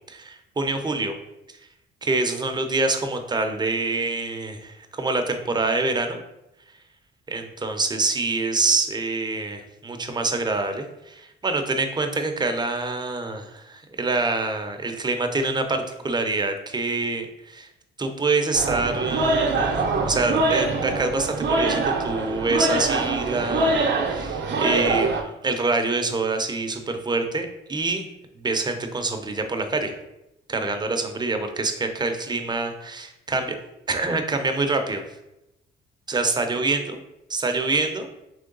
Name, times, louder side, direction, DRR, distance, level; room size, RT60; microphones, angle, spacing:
voice 1, 0.1-1.1 2.0-6.2 7.3-17.7 18.0-28.1 28.4-29.9 30.5-33.6 33.9-35.0 36.1-37.0 37.3-38.1, right 3 dB, 20° right, 6 dB, 0.6 m, -26 dB
sound 1, 18.5-25.2, right 3 dB, 60° right, 0.7 m, -24 dB
3.8 x 3.1 x 3.8 m, 0.88 s
cardioid pair, 90°, 20 cm